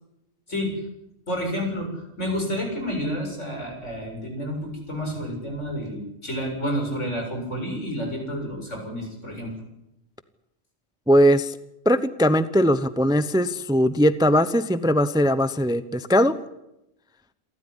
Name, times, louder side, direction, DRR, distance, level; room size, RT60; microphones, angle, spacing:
voice 1, 1.3-9.5, equal, 70° left, 2 dB, 7.9 m, -30 dB
voice 2, 11.1-11.6 11.8-16.4, equal, 5° right, 13 dB, 0.7 m, -20 dB
28.0 x 14.0 x 10.0 m, 0.87 s
omnidirectional pair, 1.3 m